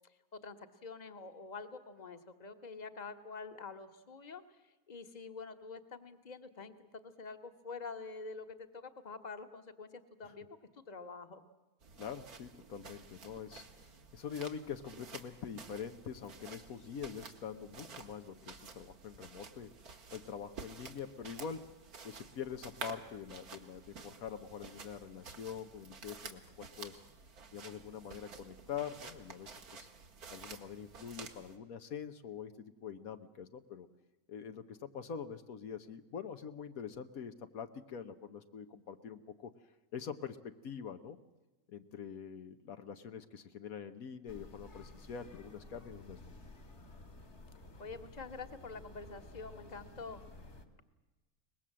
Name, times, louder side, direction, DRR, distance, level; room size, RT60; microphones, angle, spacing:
voice 1, 0.3-10.5 10.7-11.4 47.8-50.2, left 4 dB, 30° left, 8 dB, 1.4 m, -47 dB
sound 1, 11.8-31.6, right 5 dB, 90° right, 2.1 m, -51 dB
voice 2, 12.0-19.7 20.1-21.7 22.0-27.0 27.5-29.9 30.3-33.9 34.3-39.5 39.9-41.2 41.7-46.2, left 7 dB, 75° left, 8 dB, 1.4 m, -45 dB
sound 2, 44.3-50.7, left 2 dB, 50° left, 2.2 m, -53 dB
23.5 x 20.5 x 7.5 m, 1.1 s
omnidirectional pair, 1.5 m